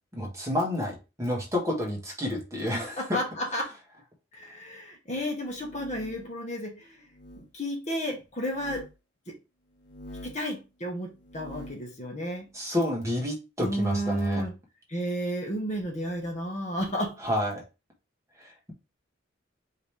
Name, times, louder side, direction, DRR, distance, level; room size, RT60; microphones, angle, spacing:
voice 1, 0.1-3.2 12.5-14.4 17.2-17.6 18.4-18.7, left 1 dB, 15° right, 1.3 m, -29 dB
voice 2, 3.0-3.7 4.3-7.0 7.4-8.9 9.3-9.4 10.2-12.5 13.6-14.5 14.9-17.2, equal, 35° left, 1.1 m, -32 dB
sound 1, 5.4-6.4 7.1-7.5 8.5-8.9 9.8-10.5 11.2-11.9, equal, 60° left, 1.0 m, -45 dB
5.2 x 2.9 x 3.3 m
head